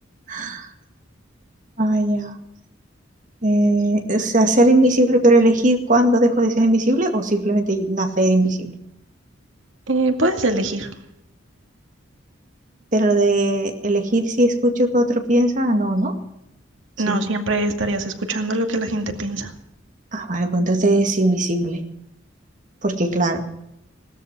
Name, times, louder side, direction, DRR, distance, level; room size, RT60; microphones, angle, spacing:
voice 1, 0.3-0.7 1.8-2.3 3.4-8.7 12.9-16.2 17.1-17.2 20.1-21.8 22.8-23.5, right 1 dB, 40° right, 5 dB, 2.1 m, -18 dB
voice 2, 9.9-10.9 17.0-19.5, right 2 dB, 80° right, 4 dB, 2.2 m, -22 dB
18.0 x 13.0 x 6.0 m, 0.79 s
head